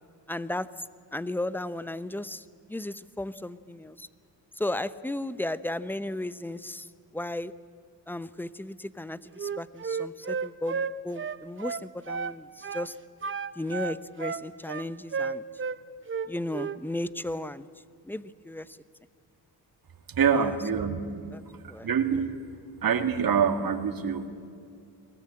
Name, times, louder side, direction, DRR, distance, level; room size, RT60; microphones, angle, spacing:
voice 1, 0.3-0.7 1.1-4.1 4.6-6.9 7.1-7.5 8.1-12.9 13.6-15.4 16.3-17.7 18.0-18.8 20.3-20.8 21.3-21.4 21.7-22.2, left 1 dB, 5° left, 15 dB, 0.7 m, -35 dB
Wind instrument woodwind instrument, 9.4-12.4 12.6-12.9 13.2-15.8 16.1-16.8, right 5 dB, 30° right, 0.8 m, -32 dB
voice 2, 20.1-21.0 21.8-22.3 22.8-24.3, right 7 dB, 55° right, 8 dB, 2.0 m, -25 dB
23.0 x 17.5 x 8.6 m, 2.3 s
cardioid pair, 85°, 42 cm